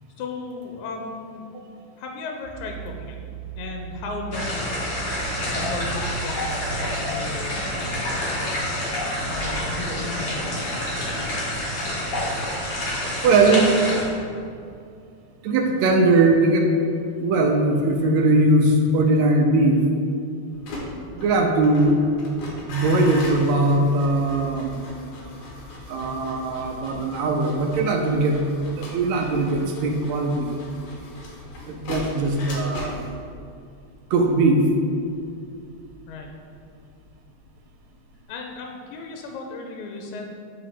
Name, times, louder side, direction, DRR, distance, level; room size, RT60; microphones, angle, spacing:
voice 1, 0.2-1.5 2.0-3.2 3.6-5.1 5.7-7.6 8.3-8.8 9.3-10.6 36.1-36.3 38.3-40.3, left 4 dB, 85° left, 2 dB, 2.0 m, -35 dB
sound 1, 2.4-8.5, right 8 dB, 45° right, 1.4 m, -38 dB
sound 2, 4.3-14.0, left 1 dB, 50° left, 1.8 m, -28 dB
voice 2, 13.2-13.7 15.4-16.7 17.2-19.9 21.1-22.0 22.7-24.8 25.9-28.4 28.8-30.6 31.7-33.1 34.1-34.7, right 2 dB, 75° right, 2 dB, 1.8 m, -20 dB
sound 3, 20.5-37.5 37.8-38.2, left 1 dB, 65° left, 2.1 m, -38 dB
9.5 x 3.7 x 3.5 m, 2.5 s
omnidirectional pair, 3.4 m